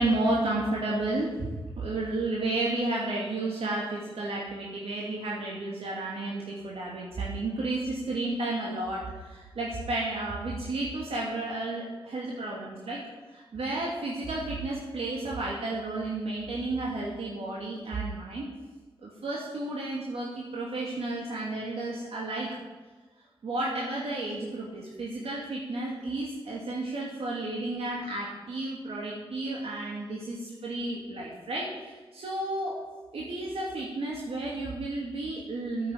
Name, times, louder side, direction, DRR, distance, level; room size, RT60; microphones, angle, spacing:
voice 1, 0.0-1.5 1.8-13.0 13.3-18.4 19.0-22.5 23.4-32.7 33.1-35.9, right 2 dB, 80° right, -4 dB, 2.6 m, -32 dB
9.5 x 8.4 x 8.7 m, 1.3 s
wide cardioid pair, 80°, 10 cm